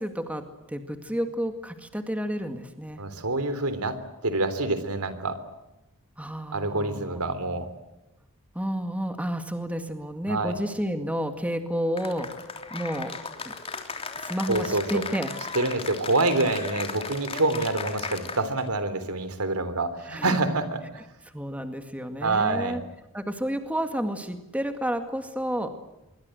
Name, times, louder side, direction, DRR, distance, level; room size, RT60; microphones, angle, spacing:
voice 1, 0.0-3.0 6.2-7.5 8.5-12.3 12.7-13.2 13.5-13.6 14.2-15.4 20.1-20.4 21.3-22.8 23.1-25.7, equal, 5° right, 7 dB, 2.1 m, -31 dB
voice 2, 3.0-4.0 4.2-5.4 6.5-7.7 10.3-10.5 14.5-15.0 15.5-21.0 22.2-22.8, right 2 dB, 90° right, 12 dB, 3.5 m, -26 dB
Cheering / Applause, 12.0-18.7, left 4 dB, 25° left, 3.3 m, -36 dB
25.5 x 23.5 x 7.9 m, 0.99 s
head